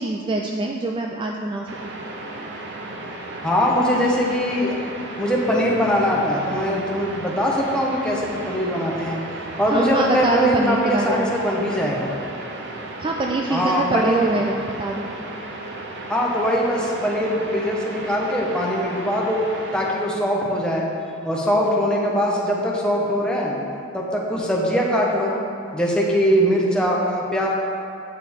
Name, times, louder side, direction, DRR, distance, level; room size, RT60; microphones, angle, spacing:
voice 1, 0.0-1.7 9.7-11.3 13.0-15.1, right 2 dB, 25° right, 1 dB, 0.3 m, -24 dB
sound 1, 1.7-19.9, right 2 dB, 60° right, 0.7 m, -35 dB
voice 2, 3.4-4.8 5.2-9.2 9.6-12.1 13.5-14.2 16.1-19.5 19.7-20.9 21.2-23.6 23.9-25.4 25.7-27.5, equal, 5° left, -4 dB, 1.0 m, -21 dB
8.2 x 6.6 x 3.6 m, 2.6 s
head